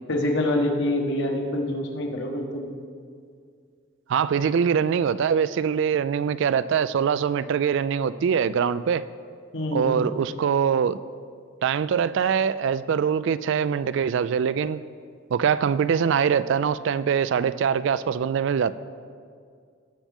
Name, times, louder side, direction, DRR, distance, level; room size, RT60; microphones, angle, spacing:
voice 1, 0.1-2.8 9.5-10.1, left 1 dB, 60° left, 1 dB, 1.4 m, -26 dB
voice 2, 4.1-9.1 9.7-11.0 11.6-14.8 15.3-18.7, right 7 dB, 60° right, 16 dB, 0.3 m, -23 dB
18.5 x 7.4 x 3.6 m, 2.2 s
head